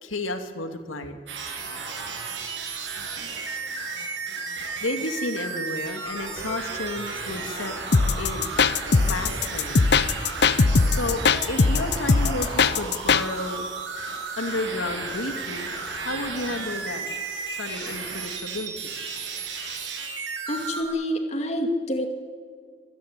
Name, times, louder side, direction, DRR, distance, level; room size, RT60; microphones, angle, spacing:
voice 1, 0.0-1.2 4.8-7.8 8.2-8.6 8.9-9.8 10.9-13.7 14.3-15.7 16.0-17.0 17.5-18.9, left 2 dB, 85° left, 7 dB, 2.3 m, -32 dB
sound 1, 1.3-20.8, right 4 dB, 65° right, 7.3 m, -33 dB
sound 2, 7.9-13.2, left 4 dB, 55° left, 0.8 m, -20 dB
voice 2, 20.5-22.1, equal, 35° left, 4 dB, 2.5 m, -27 dB
26.0 x 19.0 x 9.6 m, 2.1 s
head